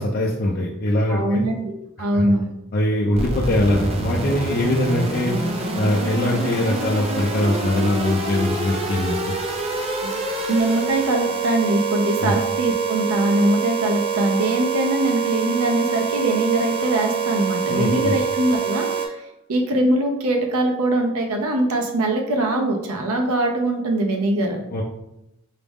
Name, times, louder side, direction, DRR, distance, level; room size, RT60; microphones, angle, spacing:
voice 1, 0.0-1.4 2.1-2.3 2.7-5.3 5.8-9.4 12.2-12.3 17.7-18.1 24.7-24.8, left 1 dB, 45° left, -3 dB, 0.4 m, -22 dB
voice 2, 1.1-1.7 2.0-2.5 10.0-10.2 10.5-19.2 19.5-24.6, right 1 dB, 80° right, 2 dB, 0.5 m, -22 dB
sound 1, 3.1-19.1, right 4 dB, 25° right, 0.4 m, -26 dB
4.8 x 2.0 x 3.5 m, 0.87 s
head